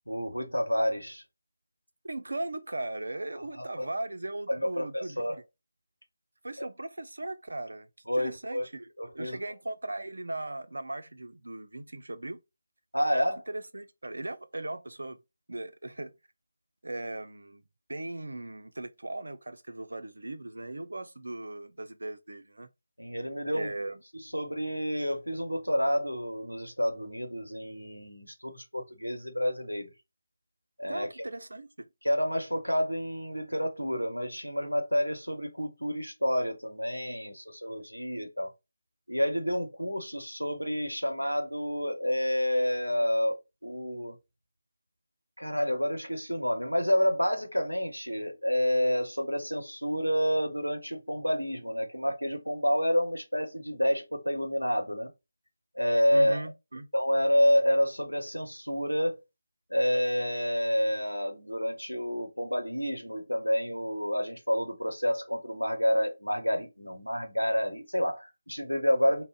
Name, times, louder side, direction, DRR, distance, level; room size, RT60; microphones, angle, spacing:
voice 1, 0.1-1.2 3.5-3.8 4.5-5.4 6.6-6.7 8.1-8.7 9.0-9.4 12.9-13.4 23.0-23.7 24.1-29.9 30.8-31.1 32.0-38.5 39.1-44.2 45.4-55.1 55.7-56.5 56.9-59.2 59.7-69.2, equal, 90° left, 0.9 m, -29 dB
voice 2, 2.0-5.4 6.4-7.9 8.2-8.9 9.1-12.4 13.5-15.2 15.5-16.2 16.8-17.6 17.9-22.7 23.5-24.0 30.9-31.9 56.1-56.9, right 2 dB, 65° right, 0.4 m, -38 dB
2.5 x 2.0 x 3.7 m
figure-of-eight pair, 155°, 0 cm